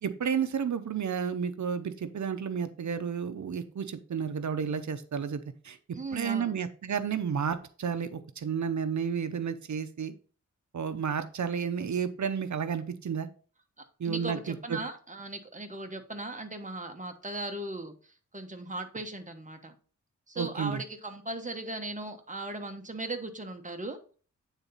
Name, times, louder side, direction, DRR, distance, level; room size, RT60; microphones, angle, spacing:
voice 1, 0.0-5.8 6.1-10.1 10.7-13.3 14.0-14.8 20.4-20.8, right 7 dB, 65° right, 10 dB, 0.7 m, -31 dB
voice 2, 5.9-6.6 14.0-17.9 18.3-19.7 20.3-24.0, right 2 dB, 25° right, 5 dB, 1.2 m, -38 dB
8.9 x 4.0 x 4.0 m, 0.40 s
cardioid pair, 70°, 32 cm